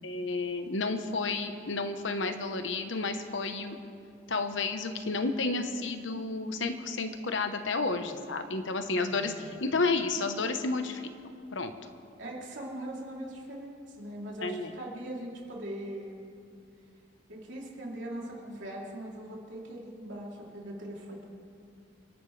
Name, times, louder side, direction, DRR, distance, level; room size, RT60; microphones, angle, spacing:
voice 1, 0.0-3.8 4.3-11.1 11.5-11.7 14.4-14.7, left 3 dB, 85° left, 7 dB, 1.1 m, -31 dB
voice 2, 9.1-9.5 12.2-16.2 17.3-21.3, right 1 dB, 85° right, -3 dB, 3.2 m, -41 dB
28.0 x 12.0 x 3.4 m, 2.4 s
head